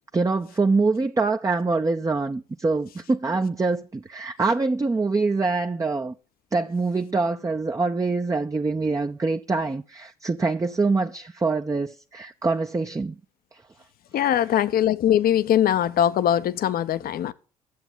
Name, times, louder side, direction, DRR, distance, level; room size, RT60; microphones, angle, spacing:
voice 1, 0.1-6.1 6.5-13.2 13.5-13.6 14.2-14.3, right 3 dB, 15° right, 0.8 m, -24 dB
voice 2, 14.1-17.3, left 10 dB, 55° left, 0.9 m, -21 dB
12.5 x 7.9 x 7.3 m
figure-of-eight pair, 50°, 19 cm